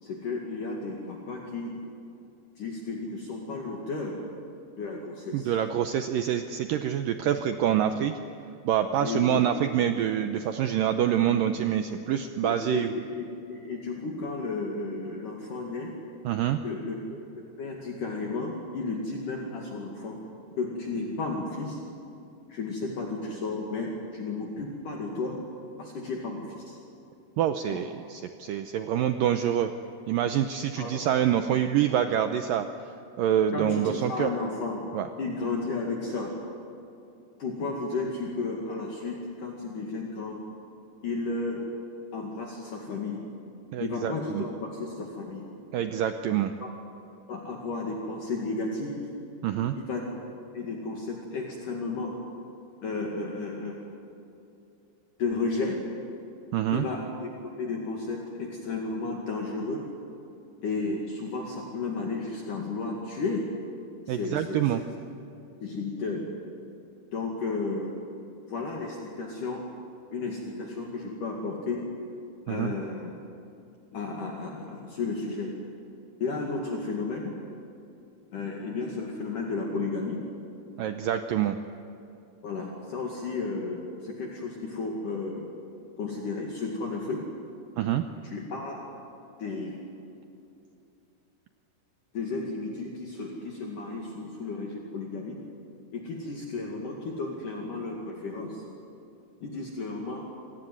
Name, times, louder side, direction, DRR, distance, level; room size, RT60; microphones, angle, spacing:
voice 1, 0.0-1.8 2.6-4.2 4.8-5.5 9.0-9.6 12.4-15.9 16.6-17.0 17.4-20.2 20.6-21.8 22.5-25.4 25.8-26.8 27.7-27.8 30.8-31.1 33.5-34.9 35.2-36.3 37.4-40.4 41.0-41.7 42.1-43.3 43.8-45.5 46.6-46.7 47.3-49.1 49.8-50.1 50.5-52.2 52.8-53.8 55.2-55.8 56.7-57.3 57.6-59.9 60.6-63.5 64.1-64.7 65.6-66.3 67.1-68.0 68.5-69.6 70.1-71.9 72.5-73.1 73.9-75.5 76.2-77.3 78.3-80.2 82.4-85.5 86.0-87.3 88.2-88.8 89.4-89.8 92.1-95.4 95.9-98.6 99.4-100.2, left 3 dB, 55° left, -1 dB, 3.4 m, -33 dB
voice 2, 5.3-8.1 8.7-12.9 16.2-16.6 27.4-29.7 30.1-32.7 33.2-34.3 34.9-35.1 43.7-44.4 45.7-46.5 49.4-49.8 56.5-56.9 64.1-64.8 72.5-72.7 80.8-81.6 87.8-88.0, right 10 dB, 85° right, 7 dB, 2.0 m, -26 dB
28.0 x 17.5 x 9.5 m, 2.7 s
omnidirectional pair, 4.9 m